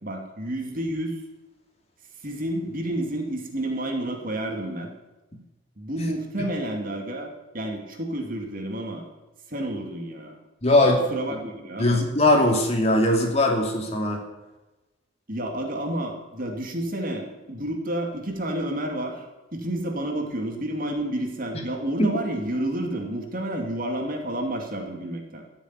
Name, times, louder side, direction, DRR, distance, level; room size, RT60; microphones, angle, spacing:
voice 1, 0.0-1.2 2.2-4.9 5.8-9.0 9.5-10.4 11.1-12.0 15.3-19.2 19.5-25.4, right 1 dB, 45° right, 2 dB, 2.5 m, -30 dB
voice 2, 10.6-11.0 11.3-11.4 11.8-14.2 22.0-22.1, left 1 dB, 30° left, 1 dB, 2.8 m, -20 dB
15.0 x 7.2 x 9.7 m, 1.1 s
head